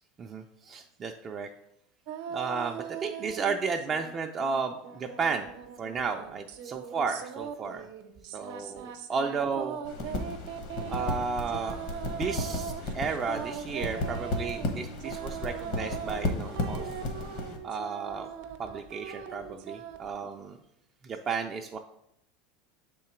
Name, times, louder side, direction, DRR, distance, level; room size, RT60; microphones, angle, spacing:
voice 1, 0.2-1.5 2.3-5.5 5.8-7.9 8.3-9.8 10.9-11.8 12.1-16.9 17.6-18.3 18.6-20.6 21.0-21.8, right 5 dB, 30° right, 3 dB, 0.4 m, -33 dB
sound 1, 2.1-4.1 4.4-20.1, right 8 dB, 65° right, 0.7 m, -40 dB
sound 2, 9.8-17.6, left 2 dB, 55° left, 1.1 m, -34 dB
6.4 x 3.8 x 4.4 m, 0.79 s
supercardioid pair, 135°, 0 cm